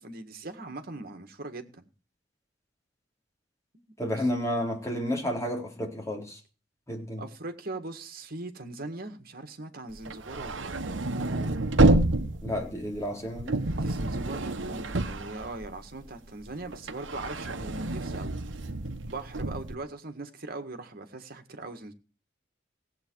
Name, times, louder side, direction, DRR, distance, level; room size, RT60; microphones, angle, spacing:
voice 1, 0.0-1.8 3.7-3.8 7.2-10.9 13.8-18.4 19.1-21.9, right 2 dB, 50° right, 1.9 m, -40 dB
voice 2, 4.0-6.4 6.9-7.2 12.4-13.6, equal, 15° left, 4.0 m, -31 dB
sound 1, 10.0-16.1 16.4-19.8, right 2 dB, 70° right, 1.2 m, -28 dB
17.0 x 8.2 x 4.7 m
head